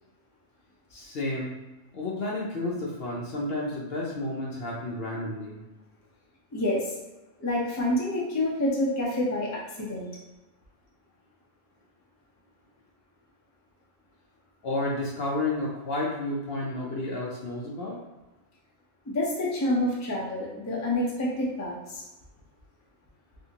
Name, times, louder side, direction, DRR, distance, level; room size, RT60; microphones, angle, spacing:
voice 1, 0.9-1.6 1.9-5.6 14.6-18.0, left 2 dB, 55° left, -4 dB, 0.8 m, -31 dB
voice 2, 6.5-6.9 7.4-10.1 19.1-22.0, left 1 dB, 20° left, -5 dB, 0.5 m, -28 dB
3.4 x 2.7 x 2.8 m, 1.1 s
omnidirectional pair, 1.3 m